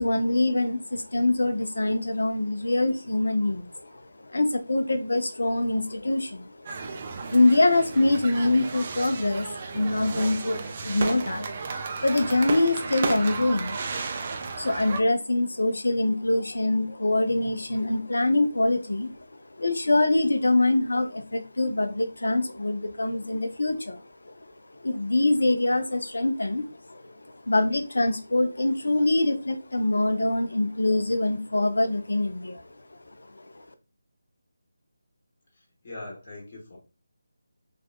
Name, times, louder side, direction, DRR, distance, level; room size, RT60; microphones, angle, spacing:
voice 1, 0.0-33.7, left 2 dB, 65° left, 0.5 m, -25 dB
sound 1, 6.7-15.0, right 4 dB, 35° right, 0.3 m, -34 dB
voice 2, 35.8-36.8, left 2 dB, 40° left, 0.9 m, -40 dB
3.4 x 2.2 x 2.2 m
figure-of-eight pair, 155°, 0 cm